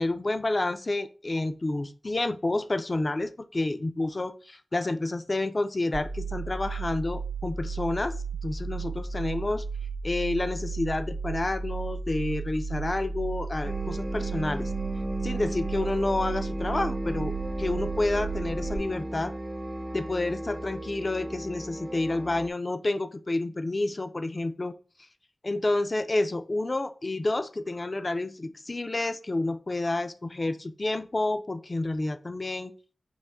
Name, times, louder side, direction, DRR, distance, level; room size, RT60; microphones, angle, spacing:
voice 1, 0.0-8.2 8.4-9.6 10.0-14.7 15.2-19.3 19.9-24.7 25.4-32.7, left 2 dB, 40° left, 10 dB, 0.3 m, -29 dB
sound 1, 5.9-18.8, right 4 dB, 85° right, 0.6 m, -34 dB
sound 2, 13.6-22.5, right 1 dB, 30° right, 0.6 m, -35 dB
5.5 x 2.9 x 3.4 m, 0.38 s
wide cardioid pair, 75°, 0 cm